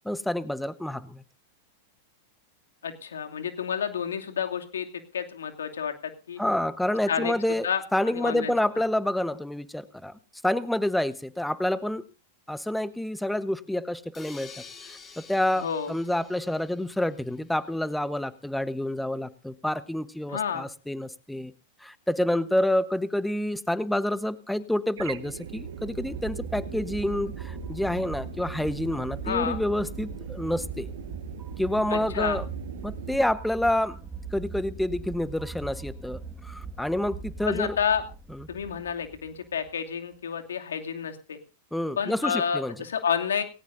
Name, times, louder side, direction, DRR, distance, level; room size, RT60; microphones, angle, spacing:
voice 1, 0.0-1.2 6.4-10.1 10.4-12.0 12.5-14.5 15.2-21.5 21.8-30.9 31.6-32.4 32.8-34.0 34.3-37.8 38.3-38.5 41.7-42.7, left 1 dB, 5° left, 14 dB, 1.1 m, -28 dB
voice 2, 2.8-5.9 6.3-6.4 7.1-7.3 7.6-8.5 15.5-15.9 20.3-20.7 29.2-29.6 31.9-32.4 37.4-38.0 38.5-41.4 42.0-43.4, left 7 dB, 85° left, 5 dB, 2.6 m, -30 dB
sound 1, 14.1-17.9, left 5 dB, 25° left, 4.6 m, -49 dB
sound 2, 25.0-33.2, right 8 dB, 75° right, 1.6 m, -40 dB
sound 3, 25.6-39.7, right 4 dB, 20° right, 1.7 m, -41 dB
19.5 x 18.0 x 2.7 m, 0.33 s
hypercardioid pair, 105°, 0 cm